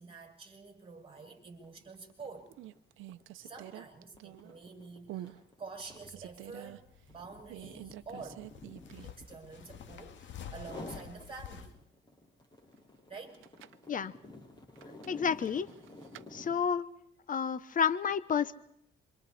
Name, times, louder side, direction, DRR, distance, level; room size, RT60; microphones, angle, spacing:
voice 1, 0.0-2.5 3.4-8.4 9.0-11.8 13.1-13.4, right 4 dB, 25° right, 3 dB, 6.5 m, -48 dB
sound 1, 1.1-1.3 1.6-10.1 10.5-11.1 11.6-16.7, left 2 dB, 20° left, 7.2 m, -51 dB
sound 2, 1.7-2.1 2.5-4.6 5.1-5.4 5.8-6.8 7.5-9.3 9.6-9.7 13.2-13.9 14.8-16.3, right 14 dB, 85° right, 0.8 m, -47 dB
sound 3, 6.7-11.7, left 8 dB, 70° left, 2.1 m, -50 dB
voice 2, 15.1-15.7 16.3-16.9 17.3-18.6, left 7 dB, 40° left, 14 dB, 1.0 m, -30 dB
27.5 x 25.5 x 4.3 m, 0.78 s
cardioid pair, 90°, 20 cm